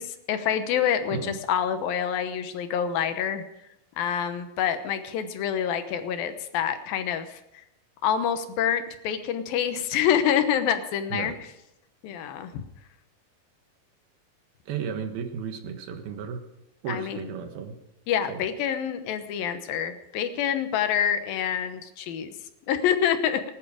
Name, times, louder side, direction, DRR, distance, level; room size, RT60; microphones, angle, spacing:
voice 1, 0.0-3.4 4.0-7.4 8.0-11.3 12.0-12.6 16.9-17.2 18.1-22.3 22.7-23.4, left 9 dB, 75° left, 9 dB, 2.8 m, -27 dB
voice 2, 14.7-16.4 16.8-17.8 18.3-18.4, right 7 dB, 80° right, 6 dB, 3.3 m, -34 dB
19.5 x 11.0 x 5.0 m, 0.88 s
omnidirectional pair, 4.3 m